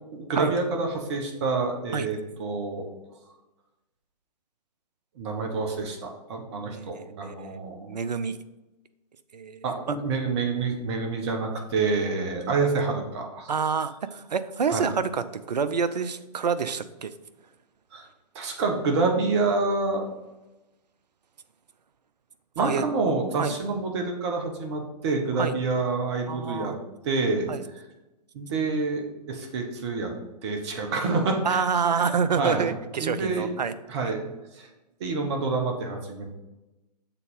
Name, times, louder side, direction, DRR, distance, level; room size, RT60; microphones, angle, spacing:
voice 1, 0.1-2.9 5.2-7.9 9.6-13.5 14.7-14.9 17.9-18.1 18.3-20.1 22.5-26.7 27.0-27.8 28.3-30.1 30.4-31.6 32.4-32.7 33.0-33.5 33.9-34.2 34.6-34.7 35.0-36.3, right 3 dB, 40° right, 3 dB, 1.3 m, -27 dB
voice 2, 6.7-8.4 9.3-10.0 13.5-17.1 22.6-22.9 23.4-23.5 25.4-25.5 26.3-26.8 27.5-27.6 31.4-33.7, right 6 dB, 75° right, 12 dB, 0.6 m, -28 dB
6.9 x 4.1 x 5.4 m, 1.0 s
figure-of-eight pair, 125°, 21 cm